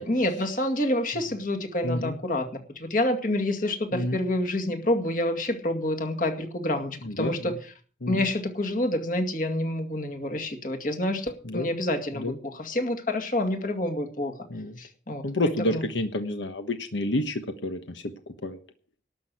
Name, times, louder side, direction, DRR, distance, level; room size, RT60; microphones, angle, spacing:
voice 1, 0.0-2.5 2.8-7.6 8.1-14.3 14.8-15.8, left 1 dB, 45° left, 4 dB, 2.2 m, -28 dB
voice 2, 1.8-2.2 3.9-4.2 7.0-7.5 8.0-8.2 11.4-11.7 12.1-12.4 14.5-14.8 15.2-18.1 18.4-18.6, left 1 dB, 90° left, 7 dB, 1.3 m, -29 dB
12.5 x 6.3 x 9.7 m, 0.42 s
head